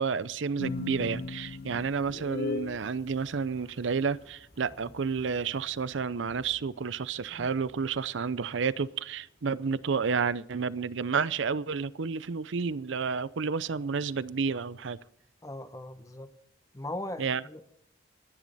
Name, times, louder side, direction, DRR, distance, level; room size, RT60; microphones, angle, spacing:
voice 1, 0.0-15.0 17.2-17.4, right 5 dB, 75° right, 0.6 m, -30 dB
sound 1, 0.5-16.0 16.3-16.4 16.8-16.9, equal, 35° left, 5.7 m, -61 dB
sound 2, 0.6-2.8, left 3 dB, 50° left, 0.5 m, -35 dB
voice 2, 15.4-16.3 16.7-17.7, left 1 dB, 15° left, 1.1 m, -39 dB
26.0 x 10.5 x 4.1 m
head